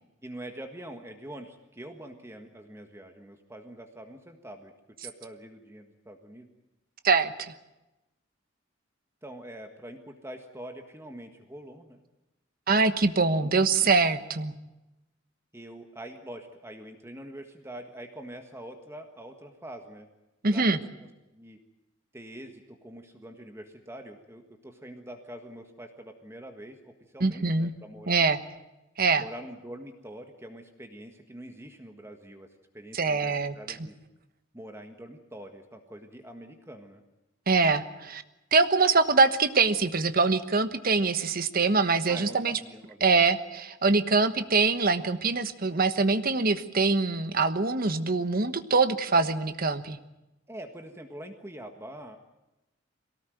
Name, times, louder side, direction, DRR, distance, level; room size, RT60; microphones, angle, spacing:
voice 1, 0.2-4.7 5.0-6.5 9.2-12.0 13.4-13.5 13.8-14.0 15.5-20.1 20.5-21.6 22.1-28.3 29.2-32.5 32.7-34.0 34.5-37.0 42.1-43.3 50.5-52.2, right 1 dB, 15° right, 5 dB, 1.6 m, -44 dB
voice 2, 12.7-14.5 20.4-20.8 27.2-27.7 28.1-28.4 29.0-29.2 32.9-33.5 37.5-38.2 38.5-42.6 43.0-50.0, right 4 dB, 50° right, 10 dB, 1.2 m, -24 dB
23.0 x 18.5 x 9.2 m, 0.99 s
head